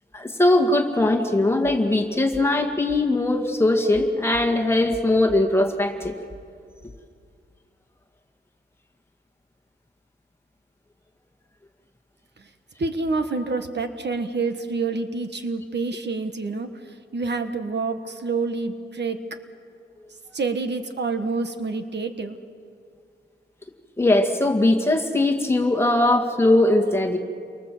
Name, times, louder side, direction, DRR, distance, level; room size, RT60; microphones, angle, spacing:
voice 1, 0.1-6.1 24.0-27.2, left 2 dB, 15° left, 3 dB, 2.0 m, -20 dB
voice 2, 12.8-19.2 20.3-22.4, right 3 dB, 65° right, 7 dB, 1.5 m, -27 dB
29.5 x 24.0 x 7.8 m, 2.3 s
wide cardioid pair, 150°, 19 cm